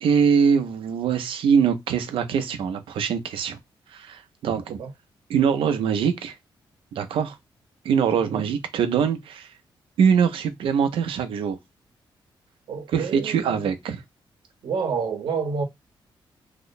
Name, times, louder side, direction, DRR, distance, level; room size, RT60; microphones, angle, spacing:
voice 1, 0.0-3.6 3.9-4.8 5.3-6.4 6.9-7.4 7.8-9.6 10.0-11.6 12.9-14.0, right 7 dB, 90° right, 0.6 m, -23 dB
voice 2, 12.7-13.7 14.6-15.6, right 5 dB, 65° right, 0.9 m, -28 dB
2.9 x 2.1 x 3.9 m
wide cardioid pair, 150°, 9 cm